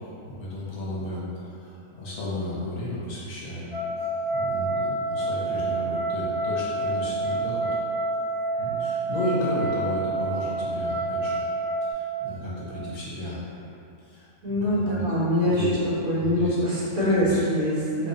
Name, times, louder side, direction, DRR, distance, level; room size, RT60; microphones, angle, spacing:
voice 1, 0.3-3.7 4.3-7.8 8.6-11.4 11.8-13.4 14.0-15.0 15.4-15.8 16.2-16.6 17.0-17.4, left 1 dB, 75° left, -7 dB, 1.3 m, -33 dB
sound 1, 3.7-11.9, right 2 dB, 40° right, 1.3 m, -28 dB
voice 2, 14.4-15.6 16.0-18.1, equal, 65° right, -9 dB, 1.5 m, -24 dB
3.2 x 2.3 x 4.1 m, 2.6 s
omnidirectional pair, 1.6 m